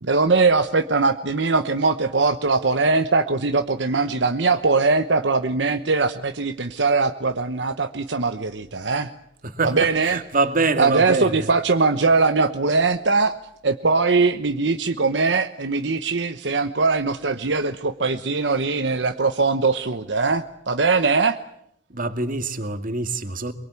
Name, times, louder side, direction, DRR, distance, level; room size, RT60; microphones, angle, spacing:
voice 1, 0.0-9.1 9.6-10.2 10.8-13.4 13.6-21.4, right 4 dB, 75° right, 1.1 m, -21 dB
voice 2, 9.4-9.7 10.1-11.5 21.9-23.5, right 3 dB, 50° right, 2.3 m, -24 dB
24.5 x 23.0 x 8.4 m
head